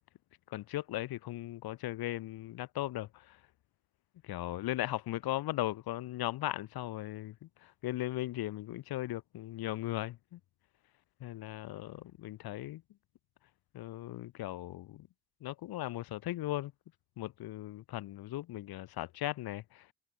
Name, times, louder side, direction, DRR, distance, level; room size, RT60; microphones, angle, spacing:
voice 1, 0.5-3.4 4.2-10.4 11.2-12.8 13.7-15.1 15.4-16.7 17.2-19.8, left 15 dB, 70° left, 1.6 m, -38 dB
cardioid pair, 120°, 39 cm